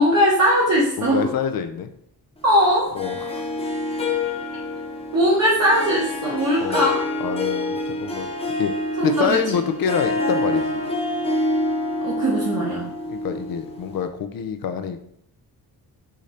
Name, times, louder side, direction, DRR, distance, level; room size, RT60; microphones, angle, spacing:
voice 1, 0.0-1.2 2.4-2.9 5.1-7.0 9.0-9.4 12.0-12.9, equal, 40° right, -6 dB, 1.0 m, -19 dB
voice 2, 1.0-1.9 2.9-3.4 6.6-6.9 7.2-8.8 9.0-11.0 13.1-15.0, left 7 dB, 60° left, 9 dB, 0.5 m, -26 dB
Harp, 3.0-14.1, left 2 dB, 15° left, 0.5 m, -27 dB
4.9 x 2.6 x 4.2 m, 0.72 s
wide cardioid pair, 160°, 39 cm